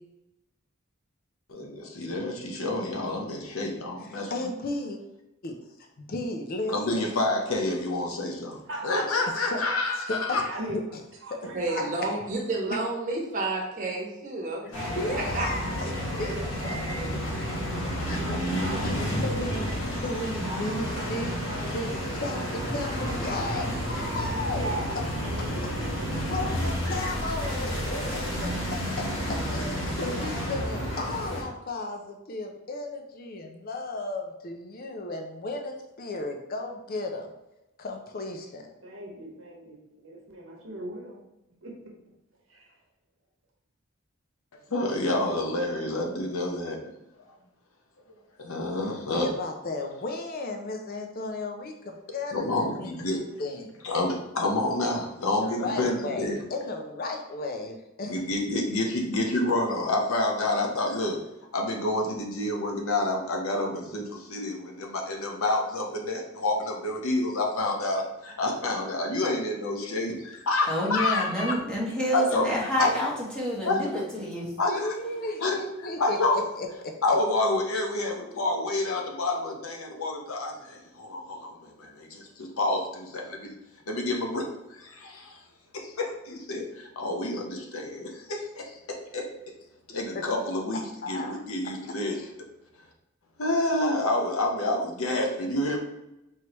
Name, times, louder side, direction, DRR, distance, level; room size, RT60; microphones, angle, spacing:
voice 1, 1.5-4.5 6.7-10.4 44.7-46.9 48.4-49.3 52.3-53.2 53.8-56.4 58.1-61.2 61.5-71.5 72.1-72.5 72.8-72.9 73.6-73.9 74.6-75.0 75.4-75.5 76.0-76.4 77.0-83.6 83.9-85.4 85.7-89.3 89.9-92.2 93.4-95.8, left 2 dB, 90° left, 1 dB, 0.9 m, -28 dB
voice 2, 4.0-5.0 5.4-5.6 6.1-7.1 9.5-9.6 10.1-10.4 11.3-11.4 14.6-15.9 16.2-16.4 16.6-16.8 18.1-25.0 26.1-27.8 28.1-28.2 28.7-37.3 37.8-38.7 49.1-53.7 55.4-58.1 74.7-77.2 90.1-90.3 91.0-91.4, left 2 dB, 45° left, 3 dB, 0.5 m, -35 dB
voice 3, 8.7-10.8 11.2-12.2 15.5-17.8 24.6-26.5 27.4-28.3 38.8-41.2 41.6-41.7 42.5-42.8, right 2 dB, 65° right, -1 dB, 1.0 m, -40 dB
voice 4, 11.5-14.9 15.3-15.5, right 2 dB, 40° right, -2 dB, 1.0 m, -30 dB
sound 1, 14.7-31.4, equal, 65° left, 1.2 m, -30 dB
voice 5, 70.7-74.5, equal, 5° left, -6 dB, 1.1 m, -28 dB
4.5 x 3.2 x 2.9 m, 0.93 s
head